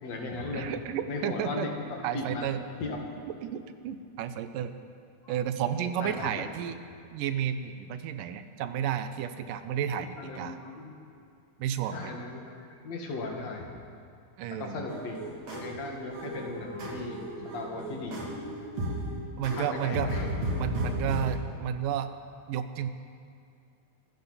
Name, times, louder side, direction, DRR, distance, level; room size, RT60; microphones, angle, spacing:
voice 1, 0.0-0.7 1.1-2.5 2.8-3.0 5.2-5.4 5.8-6.3 9.9-10.9 11.9-13.7 14.6-15.2 15.5-18.4 19.5-20.3, left 3 dB, 55° left, 1 dB, 2.9 m, -37 dB
voice 2, 0.5-1.7 2.0-2.6 3.4-4.7 5.3-6.8 7.1-10.6 11.6-12.1 14.4-14.8 19.4-20.2 20.6-22.1 22.5-22.9, right 9 dB, 85° right, 10 dB, 2.3 m, -32 dB
sound 1, 14.9-21.2, right 1 dB, 50° right, 3.6 m, -34 dB
25.0 x 14.0 x 4.2 m, 2.5 s
omnidirectional pair, 3.9 m